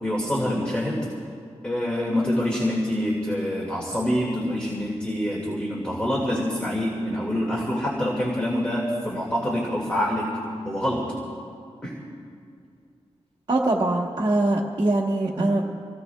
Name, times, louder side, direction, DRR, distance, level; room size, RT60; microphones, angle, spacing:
voice 1, 0.0-1.0 1.6-10.3 10.6-11.0 11.8-11.9 15.4-15.6, equal, 10° left, -4 dB, 2.0 m, -26 dB
voice 2, 13.5-15.6, right 2 dB, 40° right, -4 dB, 1.1 m, -22 dB
28.0 x 18.0 x 2.3 m, 2.3 s
wide cardioid pair, 165°, 11 cm